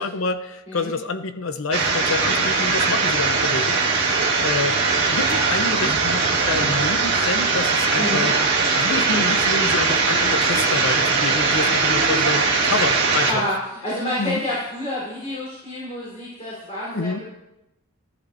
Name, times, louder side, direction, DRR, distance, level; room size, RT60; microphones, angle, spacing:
voice 1, 0.0-4.8 5.1-8.4 8.8-13.5 14.2-14.4 16.9-17.2, left 3 dB, 65° left, 9 dB, 0.7 m, -28 dB
sound 1, 1.7-13.3, right 4 dB, 50° right, 1.8 m, -20 dB
voice 2, 13.8-17.2, left 1 dB, 30° left, -8 dB, 4.0 m, -28 dB
14.5 x 10.0 x 2.7 m, 0.89 s
head